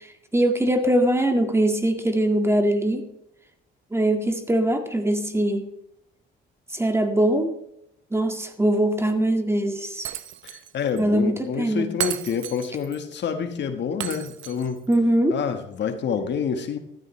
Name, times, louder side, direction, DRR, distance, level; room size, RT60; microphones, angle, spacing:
voice 1, 0.3-3.0 3.9-5.7 6.7-7.5 8.1-10.1 11.0-11.9 14.9-15.4, right 1 dB, 15° right, 5 dB, 1.9 m, -22 dB
Shatter, 10.0-10.7 11.0-11.1 12.0-13.0 14.0-15.0, right 11 dB, 75° right, 0.8 m, -33 dB
voice 2, 10.4-14.8 15.3-16.8, left 6 dB, 65° left, 7 dB, 1.5 m, -28 dB
14.5 x 13.5 x 3.3 m, 0.81 s
cardioid pair, 90°, 20 cm